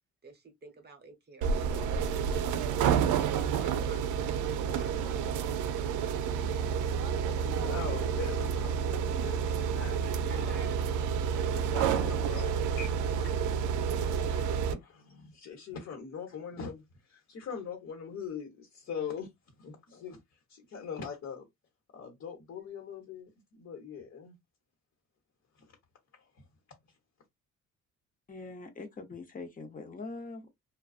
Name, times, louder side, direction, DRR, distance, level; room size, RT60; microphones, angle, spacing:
voice 1, 0.2-5.4 10.3-10.7 11.4-11.7 12.6-12.7 13.1-13.2, right 3 dB, 35° right, 0.9 m, -52 dB
sound 1, 1.4-14.7, right 7 dB, 80° right, 0.5 m, -29 dB
voice 2, 7.4-10.5 11.5-12.9 14.7-19.3 19.6-20.2 20.5-21.5 21.9-24.4 25.6-25.7 26.1-26.3, left 6 dB, 55° left, 1.1 m, -42 dB
voice 3, 28.3-30.5, left 3 dB, 30° left, 0.8 m, -43 dB
2.3 x 2.3 x 2.4 m
cardioid pair, 90°, 30 cm